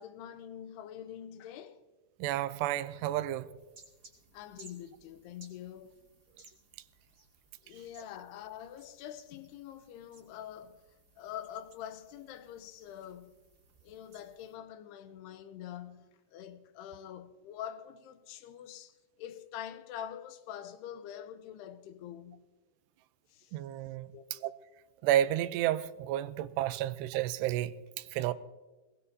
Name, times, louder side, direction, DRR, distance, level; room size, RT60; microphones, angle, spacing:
voice 1, 0.0-1.8 4.3-6.0 7.6-10.8 11.2-13.4 13.8-22.5 23.3-23.6 24.1-24.5, left 10 dB, 80° left, 2.7 m, -45 dB
voice 2, 2.2-3.5 23.5-24.1 24.4-24.6 25.0-28.3, right 12 dB, 85° right, 2.8 m, -31 dB
sound 1, 3.6-14.6, right 3 dB, 35° right, 2.9 m, -61 dB
21.0 x 20.0 x 2.8 m
omnidirectional pair, 4.8 m